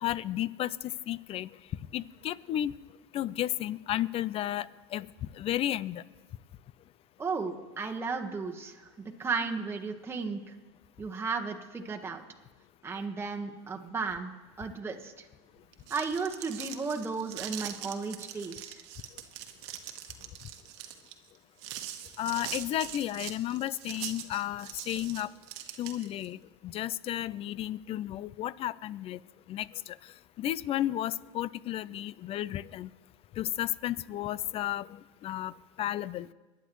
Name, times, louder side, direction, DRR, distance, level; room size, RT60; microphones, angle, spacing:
voice 1, 0.0-1.5 1.9-2.7 3.1-5.1 5.4-6.0 22.2-25.3 25.8-29.2 29.5-30.0 30.4-32.9 33.4-35.5 35.8-36.3, left 13 dB, 40° left, 20 dB, 0.5 m, -33 dB
voice 2, 7.2-10.4 11.0-12.2 12.8-14.3 14.6-15.3 15.9-18.8, right 4 dB, 15° right, 2 dB, 1.3 m, -34 dB
sound 1, 15.6-26.3, right 12 dB, 70° right, 1.3 m, -42 dB
23.5 x 10.5 x 3.1 m, 1.2 s
hypercardioid pair, 95°, 15 cm